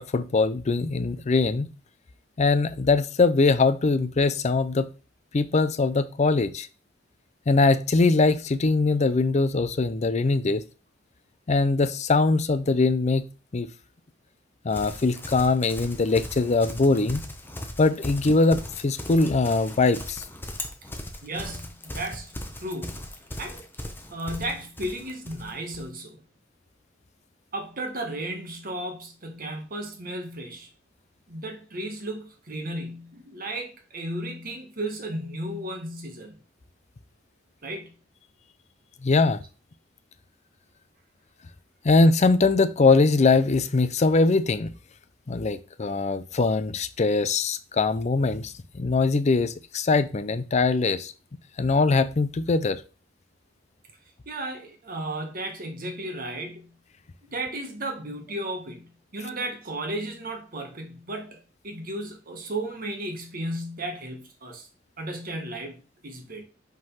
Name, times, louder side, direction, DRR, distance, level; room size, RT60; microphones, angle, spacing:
voice 1, 0.0-1.7 2.4-4.9 5.3-6.7 7.5-10.6 11.5-13.7 14.6-17.2 17.8-20.2 39.0-39.4 41.8-44.7 45.3-51.1 51.6-52.8, left 3 dB, 35° left, 0.5 m, -22 dB
Livestock farm animals working animals, 14.7-25.9, left 1 dB, 10° left, 0.8 m, -38 dB
voice 2, 21.2-22.3 22.6-23.0 23.4-23.6 24.1-26.2 27.5-30.7 31.3-36.4 37.6-37.9 54.2-56.7 57.2-64.7 65.0-66.4, right 1 dB, 50° right, 1.5 m, -34 dB
5.2 x 3.9 x 5.6 m
head